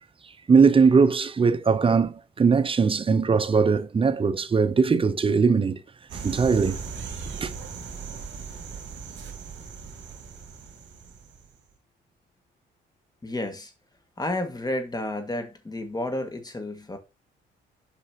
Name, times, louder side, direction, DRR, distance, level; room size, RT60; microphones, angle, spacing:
voice 1, 0.5-5.8 6.2-6.8 7.4-7.5, right 5 dB, 25° right, 0.7 m, -20 dB
sound 1, 6.1-11.5, right 5 dB, 65° right, 2.4 m, -38 dB
voice 2, 13.2-13.7 14.2-17.0, left 1 dB, 20° left, 1.9 m, -31 dB
8.3 x 5.5 x 2.9 m
cardioid pair, 90°, 20 cm